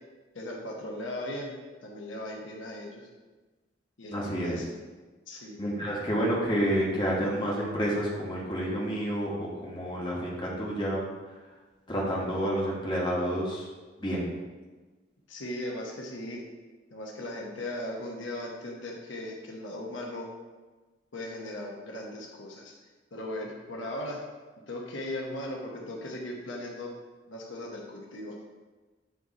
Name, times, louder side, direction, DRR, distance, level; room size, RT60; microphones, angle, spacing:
voice 1, 0.3-1.5 1.8-3.1 4.0-4.8 5.3-5.7 15.3-16.4 16.9-20.3 21.1-22.7 23.1-24.2 24.7-26.9 27.3-28.5, left 1 dB, 90° left, -1 dB, 1.0 m, -38 dB
voice 2, 4.1-4.6 5.6-11.0 11.9-13.7 14.0-14.3, equal, 25° left, -4 dB, 1.3 m, -29 dB
8.8 x 3.2 x 4.1 m, 1.3 s
head